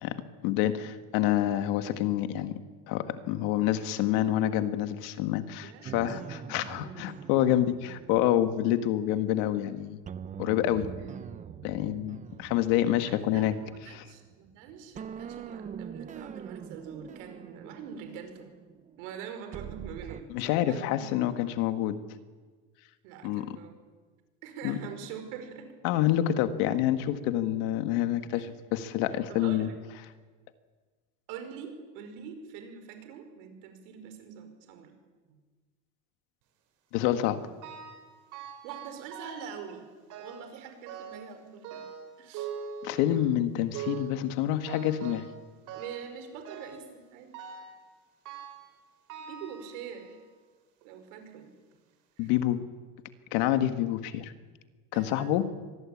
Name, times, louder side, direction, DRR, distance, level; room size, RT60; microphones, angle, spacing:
voice 1, 0.0-2.5 2.9-10.0 10.4-10.9 11.6-13.6 13.9-14.0 20.3-22.0 23.2-23.6 24.6-24.8 25.8-29.7 36.9-37.4 42.8-45.2 52.2-52.6 53.3-54.3 54.9-55.5, left 12 dB, 65° left, 9 dB, 1.8 m, -27 dB
voice 2, 5.6-6.2 10.8-11.1 13.1-18.5 19.0-20.9 21.4-21.5 23.0-23.7 24.4-25.7 28.3-28.5 29.1-29.7 31.3-34.9 38.6-39.9 40.2-41.8 42.2-42.5 45.6-47.4 49.2-50.2 50.8-51.5 52.2-52.3 54.9-55.4, right 7 dB, 75° right, 7 dB, 5.4 m, -44 dB
sound 1, 5.8-9.6 10.0-14.6 15.0-20.2, right 8 dB, 20° right, 0.7 m, -44 dB
sound 2, 37.6-38.1 38.3-39.6 40.1-40.5 40.9-41.3 41.6-43.3 43.7-44.2 44.7-45.4 45.7-46.1 46.5-46.9 47.3-47.8 48.3-48.7 49.1-50.2 50.8-50.9 51.7-51.8 52.3-52.4, right 6 dB, 55° right, 5.0 m, -42 dB
24.5 x 19.5 x 8.7 m, 1.4 s
cardioid pair, 160°, 37 cm